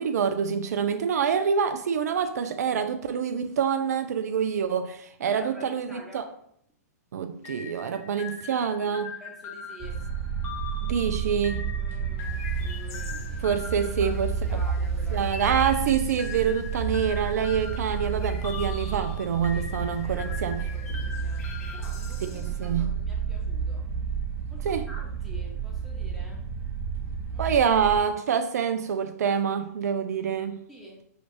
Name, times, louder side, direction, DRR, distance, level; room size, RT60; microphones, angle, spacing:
voice 1, 0.0-6.3 7.1-9.1 10.8-11.7 13.4-14.6 15.1-20.7 22.3-22.9 24.6-24.9 27.4-30.6, right 7 dB, 70° right, 0.4 m, -26 dB
voice 2, 5.2-6.4 9.2-10.1 11.8-13.4 14.0-15.6 19.5-23.9 24.5-26.5 27.3-27.6 30.7-31.0, right 1 dB, ahead, 1.2 m, -48 dB
sound 1, 7.4-14.9 15.4-22.7, left 6 dB, 25° left, 0.5 m, -42 dB
sound 2, 9.8-28.0, right 6 dB, 25° right, 0.9 m, -31 dB
Chirp tweet, 12.2-22.9, left 4 dB, 60° left, 1.4 m, -49 dB
5.0 x 3.2 x 2.9 m
hypercardioid pair, 125°, 9 cm